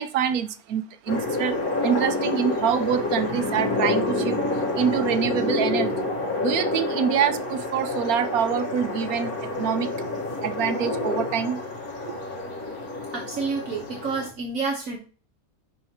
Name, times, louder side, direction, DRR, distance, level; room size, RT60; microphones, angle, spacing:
voice 1, 0.0-4.4 4.8-6.1 6.4-9.9 10.4-11.6 12.0-12.2, right 8 dB, 80° right, 1.1 m, -26 dB
sound 1, 1.1-14.3, left 2 dB, 75° left, 1.9 m, -28 dB
voice 2, 13.1-15.0, right 4 dB, 65° right, 1.5 m, -29 dB
10.5 x 4.4 x 2.9 m
omnidirectional pair, 1.6 m